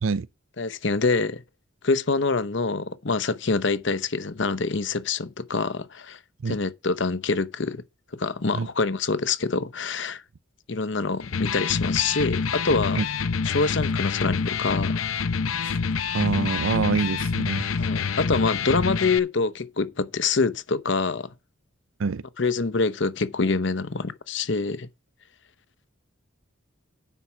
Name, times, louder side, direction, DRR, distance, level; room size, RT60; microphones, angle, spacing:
voice 1, 0.6-1.4 1.8-6.2 6.5-7.8 8.1-10.2 10.7-13.0 13.4-15.0 17.8-21.3 22.4-24.9, left 4 dB, 60° left, 0.8 m, -25 dB
Electric guitar, 11.2-19.2, left 5 dB, 90° left, 0.7 m, -27 dB
voice 2, 16.1-17.7 22.0-22.2, right 4 dB, 75° right, 0.5 m, -25 dB
9.3 x 5.7 x 5.8 m
head